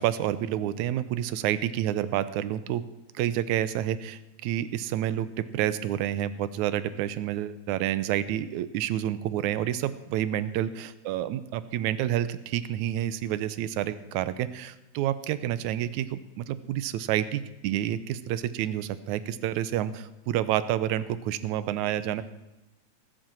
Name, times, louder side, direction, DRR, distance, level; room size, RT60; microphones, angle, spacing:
voice 1, 0.0-2.8 3.2-22.2, right 12 dB, 85° right, 14 dB, 2.1 m, -29 dB
19.0 x 7.8 x 7.4 m, 1.0 s
omnidirectional pair, 3.3 m